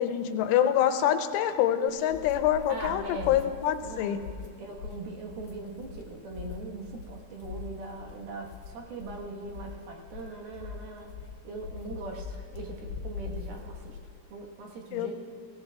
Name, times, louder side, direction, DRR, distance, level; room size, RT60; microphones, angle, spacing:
voice 1, 0.0-4.2 14.9-15.1, left 10 dB, 85° left, 8 dB, 3.2 m, -26 dB
sound 1, 1.9-14.2, left 6 dB, 65° left, 2.7 m, -42 dB
voice 2, 2.7-3.3 3.8-11.1 11.4-14.0 14.3-15.1, right 3 dB, 65° right, 0 dB, 2.8 m, -41 dB
24.5 x 17.0 x 2.3 m, 2.3 s
omnidirectional pair, 5.6 m